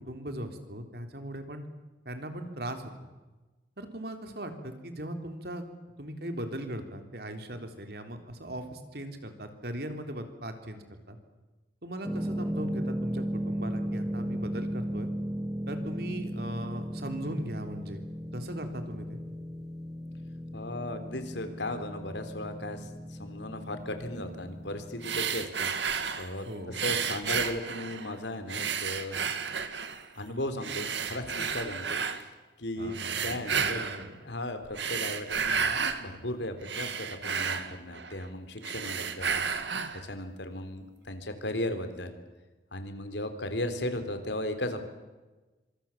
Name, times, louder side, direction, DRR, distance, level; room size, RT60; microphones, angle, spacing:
voice 1, 0.0-1.6 2.1-2.9 3.8-5.6 6.0-11.2 11.8-15.1 15.7-19.2 26.5-26.7 32.8-34.2, right 1 dB, 60° right, 6 dB, 3.5 m, -39 dB
sound 1, 12.0-25.3, equal, ahead, 1.3 m, -36 dB
voice 2, 20.5-25.7 26.2-26.5 26.8-29.2 30.2-32.3 32.6-33.8 34.3-39.8 40.1-42.2 42.7-44.9, left 1 dB, 80° left, 8 dB, 3.5 m, -36 dB
sound 2, 25.0-26.3 26.7-28.1 28.5-30.0 30.6-32.2 32.9-34.1 34.6-36.0 36.4-38.3 38.6-40.0, right 6 dB, 80° right, 2.2 m, -32 dB
26.0 x 26.0 x 7.3 m, 1.2 s
head